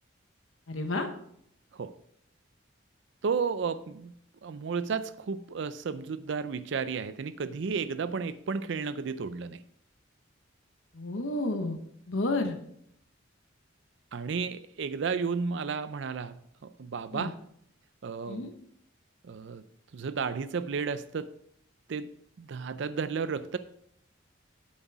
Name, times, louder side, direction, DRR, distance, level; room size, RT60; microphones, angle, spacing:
voice 1, 0.7-1.1 10.9-11.8 12.1-12.5 17.1-17.3 18.3-18.5, left 2 dB, 75° left, 5 dB, 1.0 m, -30 dB
voice 2, 3.2-4.1 4.4-9.6 14.1-16.4 16.6-17.3 18.0-18.5 19.2-19.6 19.9-21.3 21.9-22.1 22.4-23.6, right 5 dB, 60° right, 13 dB, 0.4 m, -33 dB
8.1 x 7.5 x 4.7 m, 0.70 s
head